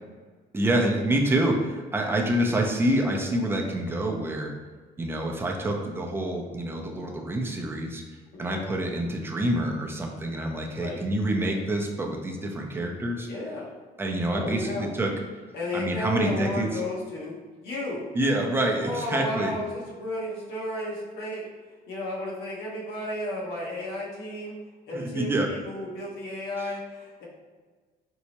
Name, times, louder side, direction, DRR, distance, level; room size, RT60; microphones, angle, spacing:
voice 1, 0.5-4.5 5.0-8.0 8.4-13.3 14.0-15.1 15.7-16.8 18.1-19.5 24.9-25.5 26.6-26.7, right 1 dB, 15° right, 1 dB, 0.5 m, -27 dB
voice 2, 13.3-13.7 14.3-14.9 15.5-18.0 18.8-21.5 21.9-24.6 24.9-27.2, left 1 dB, 70° left, -4 dB, 1.0 m, -33 dB
4.5 x 2.0 x 2.9 m, 1.4 s
cardioid pair, 110°, 17 cm